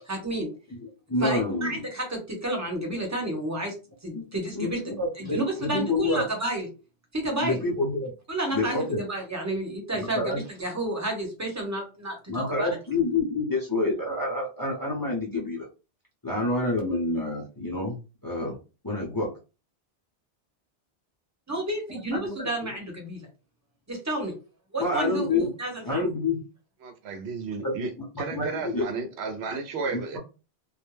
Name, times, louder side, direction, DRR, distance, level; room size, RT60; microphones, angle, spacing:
voice 1, 0.1-0.5 1.2-3.7 4.0-4.8 5.2-6.7 7.1-7.6 8.3-12.8 21.5-23.3 23.9-24.3 24.7-26.0, right 1 dB, 15° right, 0.8 m, -31 dB
voice 2, 0.8-1.8 4.1-4.2 4.5-6.2 7.4-8.1 8.5-9.0 9.9-10.4 12.3-15.7 16.2-18.0 18.2-18.6 18.8-19.3 21.9-22.7 24.8-25.5 25.9-26.4 27.6-28.1 28.3-28.9 29.9-30.2, left 2 dB, 20° left, 0.7 m, -28 dB
voice 3, 26.8-27.9 28.2-30.2, right 4 dB, 90° right, 0.9 m, -33 dB
2.3 x 2.1 x 3.1 m
omnidirectional pair, 1.1 m